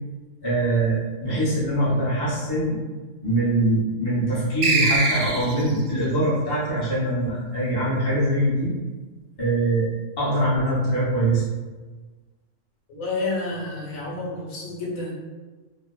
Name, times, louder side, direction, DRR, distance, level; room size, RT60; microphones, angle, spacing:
voice 1, 0.4-2.8 3.2-8.7 9.4-9.8 10.2-11.4, right 1 dB, 25° left, -9 dB, 0.6 m, -23 dB
sound 1, 4.6-5.8, right 3 dB, 65° right, 0.8 m, -22 dB
voice 2, 12.9-15.1, left 2 dB, 85° left, -4 dB, 1.1 m, -29 dB
2.7 x 2.0 x 2.3 m, 1.3 s
omnidirectional pair, 1.4 m